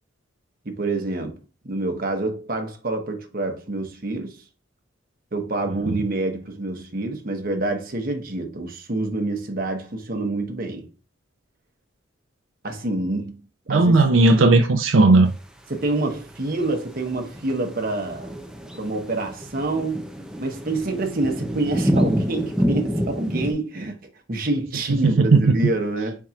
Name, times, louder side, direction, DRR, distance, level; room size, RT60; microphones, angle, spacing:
voice 1, 0.6-1.4 1.6-4.4 5.3-10.9 12.6-13.4 13.7-13.9 15.7-18.3 18.7-20.0 20.4-24.0 24.3-26.3, right 2 dB, 45° right, 1.0 m, -27 dB
voice 2, 13.7-15.4 24.9-25.6, right 3 dB, 80° right, 0.5 m, -16 dB
sound 1, 16.3-23.5, equal, 5° right, 0.5 m, -27 dB
4.5 x 4.3 x 2.4 m
head